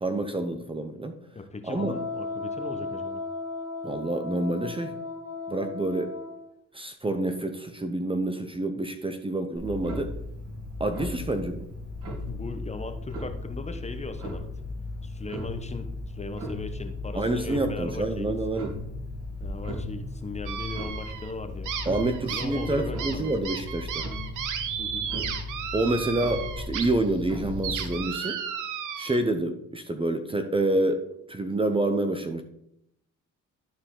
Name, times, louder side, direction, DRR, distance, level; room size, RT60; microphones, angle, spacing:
voice 1, 0.0-1.1 1.7-2.0 3.8-5.0 5.5-6.1 6.7-10.1 10.8-11.7 17.1-18.8 21.9-24.1 25.7-28.4 29.0-32.4, right 2 dB, 20° right, 7 dB, 0.7 m, -28 dB
voice 2, 1.3-3.2 12.3-14.5 15.0-18.3 19.4-21.7 22.3-23.5 24.8-25.1, left 3 dB, 20° left, 8 dB, 0.9 m, -38 dB
Wind instrument woodwind instrument, 1.7-6.4, left 3 dB, 60° left, 2.3 m, -35 dB
Clock, 9.5-28.0, left 2 dB, 50° right, 3.7 m, -36 dB
sound 1, 20.5-21.3 21.6-26.8 27.2-29.2, right 8 dB, 85° right, 0.9 m, -34 dB
12.0 x 4.4 x 3.8 m, 0.76 s
cardioid pair, 90°, 30 cm